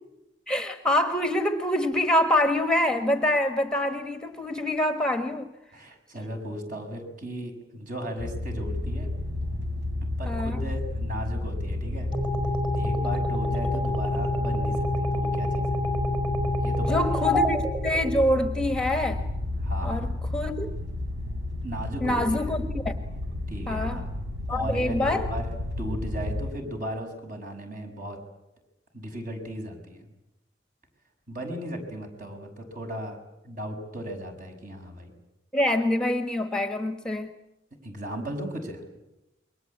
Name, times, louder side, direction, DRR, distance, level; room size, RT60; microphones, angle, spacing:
voice 1, 0.5-5.5 10.2-10.6 16.9-19.3 19.8-20.7 22.0-23.0 23.7-24.1 24.5-25.3 35.5-37.3, left 1 dB, 5° left, 8 dB, 1.2 m, -26 dB
voice 2, 5.7-9.1 10.2-12.1 12.7-15.8 16.6-17.4 19.6-20.1 21.6-22.5 23.5-24.1 24.5-25.5 25.8-28.2 28.9-30.1 31.3-33.2 33.4-35.1 37.8-38.8, equal, 50° right, 4 dB, 6.4 m, -36 dB
sound 1, 8.2-26.5, left 2 dB, 75° right, 3.8 m, -32 dB
sound 2, 12.1-18.6, left 2 dB, 25° right, 4.7 m, -27 dB
28.5 x 22.5 x 8.6 m, 0.93 s
head